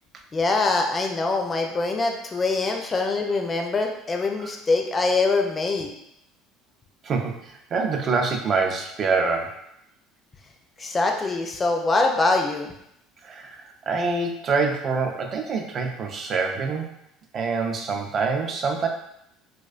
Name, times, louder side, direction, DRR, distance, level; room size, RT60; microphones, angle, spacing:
voice 1, 0.3-5.9 10.8-12.7, left 3 dB, 25° left, 3 dB, 0.4 m, -23 dB
voice 2, 7.0-9.5 13.2-16.9 17.3-18.9, right 4 dB, 45° right, 4 dB, 0.4 m, -25 dB
2.4 x 2.2 x 2.4 m, 0.77 s
supercardioid pair, 85°, 0 cm